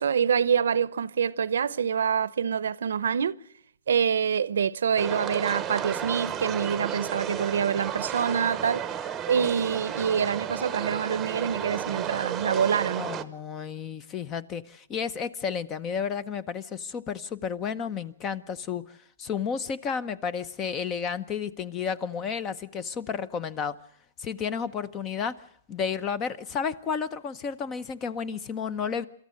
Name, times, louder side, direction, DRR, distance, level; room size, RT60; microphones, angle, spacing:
voice 1, 0.0-3.4 3.9-8.9 9.3-13.1, right 7 dB, 80° right, 0.8 m, -26 dB
sound 1, 5.0-13.2, right 9 dB, 15° right, 1.0 m, -32 dB
voice 2, 13.0-23.8 24.2-25.4 25.7-29.0, left 6 dB, 20° left, 0.8 m, -32 dB
26.5 x 14.0 x 7.7 m
hypercardioid pair, 160°, 0 cm